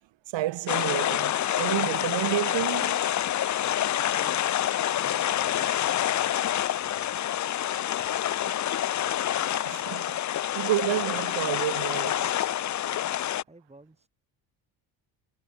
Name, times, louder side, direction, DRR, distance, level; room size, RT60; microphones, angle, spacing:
voice 1, 0.3-3.0 9.7-10.2 10.5-12.3, right 15 dB, 70° right, 1.3 m, -30 dB
sound 1, 0.7-13.4, left 11 dB, 40° left, 0.6 m, -27 dB
voice 2, 4.1-7.3 8.0-8.4 13.4-14.1, right 2 dB, 15° right, 4.9 m, -54 dB
cardioid pair, 95°, 46 cm